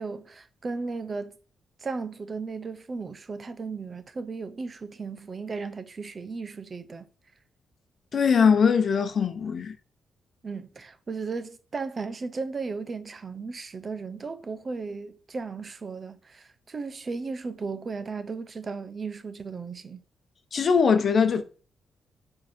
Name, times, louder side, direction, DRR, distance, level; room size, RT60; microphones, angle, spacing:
voice 1, 0.0-1.3 1.8-7.1 10.4-20.0, right 4 dB, 35° right, 0.7 m, -35 dB
voice 2, 8.1-9.7 20.5-21.4, left 6 dB, 50° left, 0.9 m, -21 dB
9.5 x 3.9 x 4.3 m
cardioid pair, 105°, 0 cm